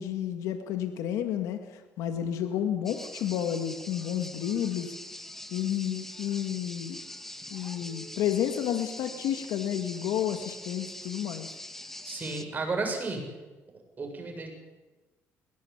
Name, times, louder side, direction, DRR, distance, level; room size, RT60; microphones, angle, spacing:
voice 1, 0.0-4.9 5.5-7.0 7.5-11.5, left 10 dB, 85° left, 7 dB, 1.9 m, -31 dB
sound 1, 2.9-12.5, left 1 dB, 5° left, 1.8 m, -43 dB
voice 2, 12.0-13.2 14.0-14.5, right 3 dB, 30° right, 3 dB, 7.3 m, -32 dB
21.5 x 18.0 x 8.7 m, 1.2 s
cardioid pair, 95°, 5 cm